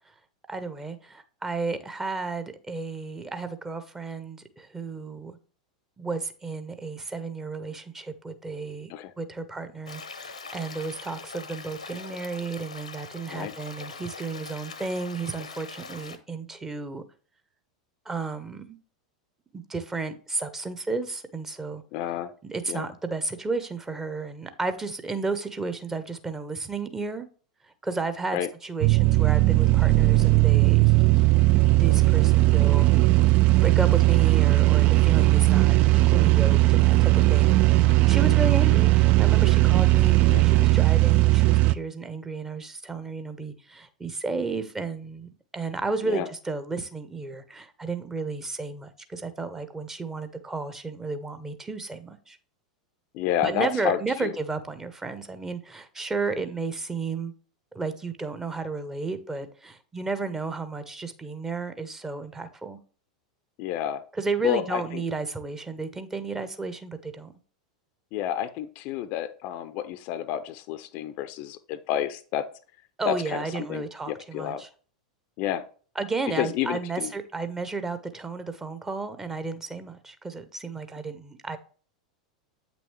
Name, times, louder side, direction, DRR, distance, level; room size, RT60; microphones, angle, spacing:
voice 1, 0.5-5.4 6.0-17.0 18.0-18.8 19.5-21.8 22.4-27.3 27.8-31.2 31.7-32.9 33.6-37.6 38.1-52.4 53.4-57.3 57.7-62.8 64.2-67.3 73.0-74.7 76.0-81.6, right 3 dB, 15° right, 0.8 m, -33 dB
Stream, 9.9-16.2, left 4 dB, 75° left, 0.9 m, -42 dB
voice 2, 21.9-22.3 22.7-22.9 28.3-28.5 40.3-40.4 46.0-46.3 53.1-54.3 63.6-64.0 64.4-65.0 68.1-72.5 73.1-74.6 75.4-75.6 76.3-77.1, left 11 dB, 45° left, 0.6 m, -30 dB
sound 1, 28.8-41.7, right 19 dB, 40° right, 0.4 m, -18 dB
8.3 x 6.2 x 3.2 m
figure-of-eight pair, 85°, 4 cm